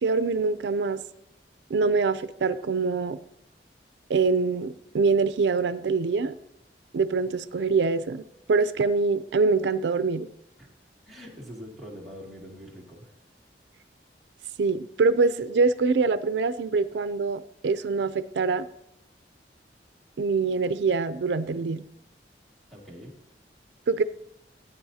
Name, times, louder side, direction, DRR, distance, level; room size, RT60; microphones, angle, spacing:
voice 1, 0.0-1.0 1.7-3.2 4.1-6.4 6.9-10.3 14.6-18.7 20.2-21.8 23.9-24.0, right 4 dB, 80° right, 13 dB, 0.4 m, -24 dB
voice 2, 11.0-13.2 22.7-23.1, equal, ahead, -2 dB, 2.2 m, -43 dB
16.5 x 9.4 x 2.8 m, 0.79 s
head